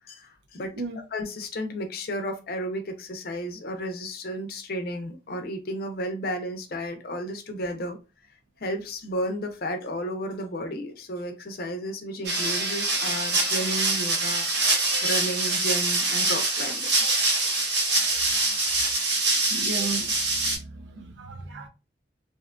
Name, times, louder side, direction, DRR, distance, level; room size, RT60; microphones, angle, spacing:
voice 1, 0.0-8.0 8.6-16.9 17.4-17.5 17.9-18.2 18.6-18.7, equal, 55° left, 0.5 m, -33 dB
sound 1, 12.2-20.6, right 2 dB, 70° right, 0.8 m, -24 dB
voice 2, 19.5-21.7, right 4 dB, 85° right, 0.5 m, -35 dB
2.6 x 2.2 x 2.4 m
head